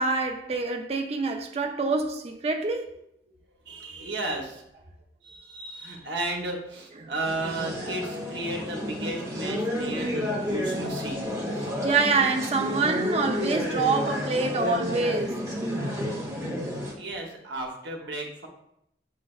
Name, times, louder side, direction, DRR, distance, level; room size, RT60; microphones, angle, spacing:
voice 1, 0.0-2.9 7.0-7.1 11.8-15.4, right 4 dB, 35° right, 0.4 m, -26 dB
voice 2, 3.6-4.6 5.2-11.5 17.0-18.5, right 2 dB, 70° right, 0.9 m, -34 dB
sound 1, 7.3-16.9, equal, 15° right, 0.8 m, -31 dB
7.0 x 3.2 x 2.3 m
head